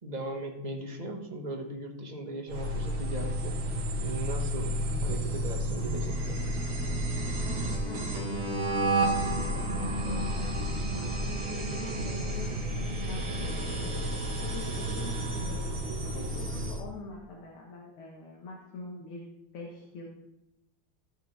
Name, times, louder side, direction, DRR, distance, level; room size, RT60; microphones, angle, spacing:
voice 1, 0.0-3.6 4.0-4.7 5.0-6.4, right 2 dB, 25° right, 1 dB, 1.3 m, -38 dB
sound 1, 2.5-16.8, right 1 dB, 70° right, 2.3 m, -31 dB
voice 2, 7.4-9.1 9.5-13.9 14.4-15.8 16.1-19.3 19.5-20.1, left 3 dB, 75° left, -2 dB, 2.2 m, -44 dB
16.0 x 6.5 x 3.4 m, 0.92 s
omnidirectional pair, 2.4 m